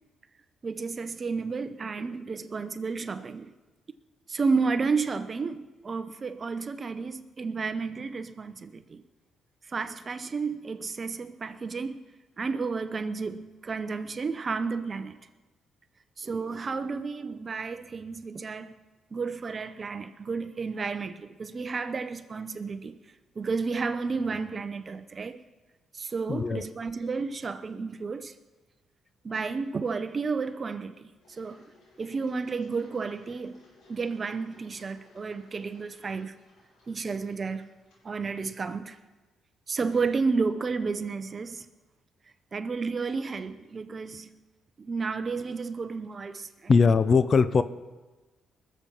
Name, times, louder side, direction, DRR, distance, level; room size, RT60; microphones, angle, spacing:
voice 1, 0.6-3.5 4.3-9.0 9.7-12.0 12.4-15.2 16.2-18.7 19.1-23.0 23.4-25.4 25.9-28.3 29.2-31.7 32.0-33.6 33.9-36.3 36.9-37.7 38.0-39.0 39.7-41.7 42.5-44.3 44.8-46.7, right 4 dB, 35° right, 0.8 m, -32 dB
voice 2, 26.3-26.6 46.7-47.6, left 5 dB, 40° left, 0.6 m, -20 dB
Engine, 31.2-39.0, left 2 dB, 85° left, 5.5 m, -61 dB
21.0 x 7.3 x 5.5 m
cardioid pair, 90°, 0 cm